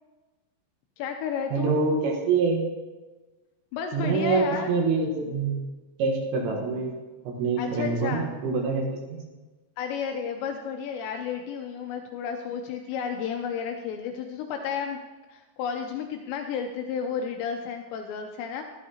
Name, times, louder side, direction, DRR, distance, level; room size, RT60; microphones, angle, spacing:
voice 1, 1.0-1.8 3.7-4.8 7.6-8.3 9.8-15.0 15.3-18.6, left 7 dB, 85° left, 4 dB, 2.5 m, -32 dB
voice 2, 1.5-2.6 3.9-5.6 6.0-6.9 7.3-9.2, right 4 dB, 80° right, 0 dB, 3.8 m, -25 dB
13.0 x 12.0 x 2.9 m, 1.2 s
omnidirectional pair, 5.8 m